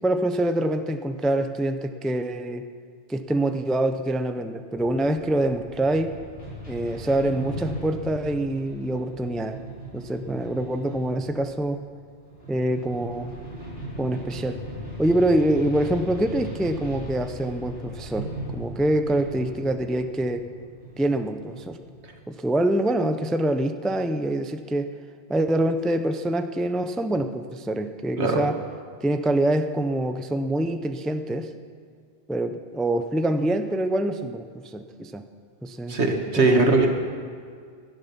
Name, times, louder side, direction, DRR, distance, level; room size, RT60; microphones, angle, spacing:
voice 1, 0.0-2.7 3.1-6.1 6.7-9.6 9.9-11.8 12.5-13.3 14.0-14.6 15.0-20.5 21.0-21.8 22.3-24.9 25.3-28.6 29.0-31.5 32.3-35.2 35.6-36.0 36.4-36.7, right 1 dB, ahead, 8 dB, 0.4 m, -25 dB
sound 1, 4.7-22.3, right 1 dB, 65° left, 4.4 m, -38 dB
voice 2, 35.9-36.9, right 3 dB, 80° right, 3 dB, 1.9 m, -20 dB
18.0 x 11.5 x 5.8 m, 2.1 s
omnidirectional pair, 1.1 m